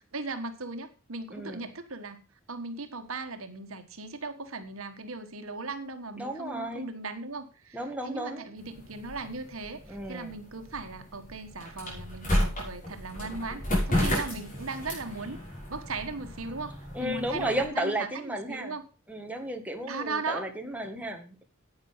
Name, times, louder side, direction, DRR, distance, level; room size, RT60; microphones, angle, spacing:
voice 1, 0.0-15.4 15.7-16.7 17.0-18.8 19.9-20.5, right 3 dB, 75° right, 8 dB, 1.5 m, -38 dB
voice 2, 1.3-1.7 6.2-6.9 7.7-8.5 9.9-10.3 16.9-18.8 19.1-21.4, right 1 dB, 5° right, 2 dB, 1.9 m, -33 dB
sound 1, 8.6-17.7, left 1 dB, 40° left, 6.1 m, -33 dB
10.5 x 9.1 x 5.6 m, 0.34 s
head